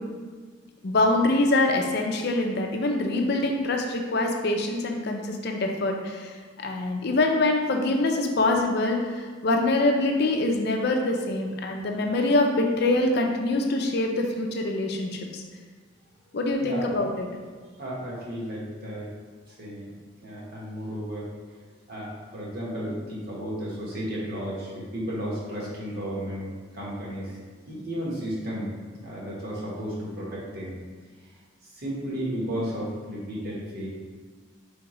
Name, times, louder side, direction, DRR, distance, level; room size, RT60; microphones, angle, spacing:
voice 1, 0.8-15.4 16.3-17.2, left 2 dB, 55° left, 2 dB, 0.5 m, -24 dB
voice 2, 17.8-19.1 19.5-19.9 20.2-21.3 21.9-27.4 27.7-28.7 29.0-30.8 31.7-33.9, equal, 50° right, -5 dB, 1.2 m, -33 dB
4.7 x 3.5 x 3.0 m, 1.5 s
head